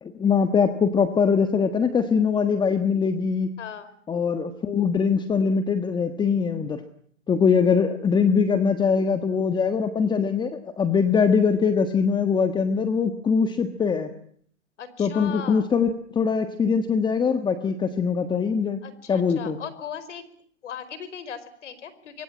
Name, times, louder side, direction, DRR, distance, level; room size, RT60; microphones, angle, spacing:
voice 1, 0.0-3.5 4.1-6.8 7.3-14.1 15.0-18.8 19.1-19.6, left 6 dB, 10° left, 9 dB, 1.4 m, -22 dB
voice 2, 3.6-3.9 14.8-15.6 18.8-20.2 20.6-22.2, left 8 dB, 75° left, 15 dB, 5.0 m, -38 dB
25.0 x 23.0 x 8.8 m, 0.62 s
hypercardioid pair, 135°, 36 cm